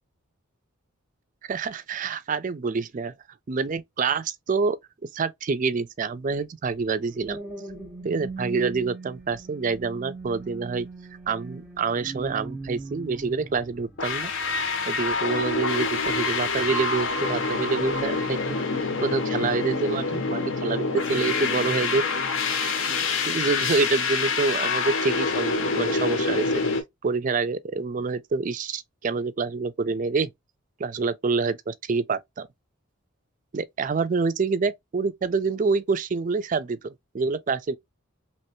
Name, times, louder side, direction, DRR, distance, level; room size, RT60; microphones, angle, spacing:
voice 1, 1.5-3.1 3.5-4.8 5.1-7.4 8.0-10.9 11.3-14.3 14.9-18.6 19.0-22.0 22.9-23.0 23.3-26.6 27.0-30.3 30.8-32.5 33.5-37.8, right 4 dB, 40° right, 0.4 m, -27 dB
sound 1, 7.0-17.3 17.8-18.1, right 3 dB, 10° right, 0.7 m, -41 dB
sound 2, 14.0-26.8, left 4 dB, 65° left, 0.8 m, -26 dB
3.2 x 2.9 x 2.9 m
head